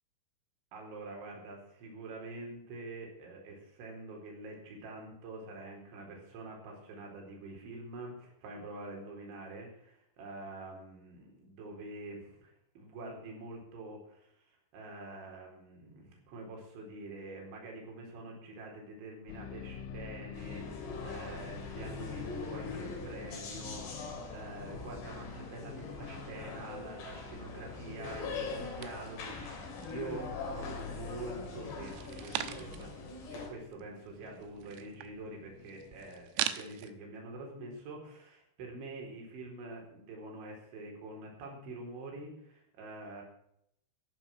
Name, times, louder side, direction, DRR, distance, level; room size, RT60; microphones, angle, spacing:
voice 1, 0.7-14.3 14.7-33.0 33.3-43.2, right 2 dB, 65° right, 0 dB, 6.6 m, -46 dB
sound 1, 19.3-36.3, left 7 dB, 85° left, 3.7 m, -50 dB
sound 2, 20.3-33.5, left 4 dB, 60° left, 5.5 m, -42 dB
sound 3, 28.8-30.1 30.5-31.2 31.7-33.0 33.3-33.4 33.6-36.9, right 12 dB, 85° right, 3.6 m, -41 dB
14.5 x 11.5 x 6.1 m, 0.72 s
omnidirectional pair, 5.8 m